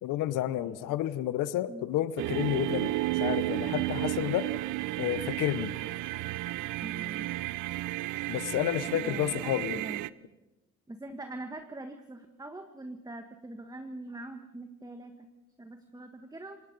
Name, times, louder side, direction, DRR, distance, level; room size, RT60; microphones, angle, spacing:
voice 1, 0.0-4.5 5.0-5.7 8.3-9.8, left 13 dB, 75° left, 15 dB, 0.9 m, -30 dB
voice 2, 0.5-1.0 1.7-1.9 6.8-7.3 8.9-10.0 10.9-15.3 15.6-16.6, right 2 dB, 10° right, 6 dB, 1.6 m, -43 dB
sound 1, 2.2-10.1, right 17 dB, 75° right, 0.6 m, -32 dB
27.5 x 19.0 x 5.3 m, 1.1 s
cardioid pair, 85°, 32 cm